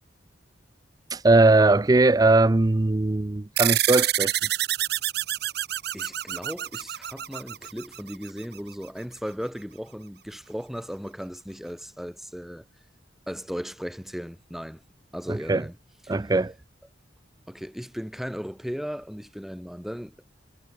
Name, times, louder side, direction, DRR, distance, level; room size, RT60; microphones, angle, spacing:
voice 1, 1.1-4.3 15.3-15.6 16.1-16.5, right 2 dB, 20° right, 0.5 m, -20 dB
sound 1, 3.6-8.4, right 13 dB, 60° right, 1.2 m, -27 dB
voice 2, 5.9-12.6 13.3-14.8 15.1-15.8 16.0-16.2 17.5-20.1, equal, ahead, 2.9 m, -36 dB
head